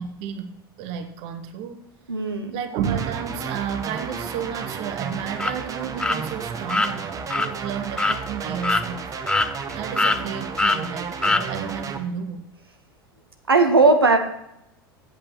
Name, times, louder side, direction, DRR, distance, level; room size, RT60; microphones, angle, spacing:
voice 1, 0.0-1.9 2.5-9.0 9.7-12.5, right 8 dB, 50° right, 9 dB, 1.1 m, -31 dB
voice 2, 2.1-2.6 10.0-10.1 13.5-14.2, right 3 dB, 85° right, 5 dB, 1.0 m, -18 dB
sound 1, 2.8-12.0, right 6 dB, 30° right, 1.1 m, -33 dB
sound 2, 5.4-5.5 6.0-6.2 6.7-6.9 7.3-7.5 8.0-8.2 8.6-8.8 9.3-9.7 10.0-10.2 10.6-10.8 11.2-11.4, left 2 dB, 5° left, 0.5 m, -22 dB
8.4 x 8.2 x 5.9 m, 0.82 s
figure-of-eight pair, 80°, 12 cm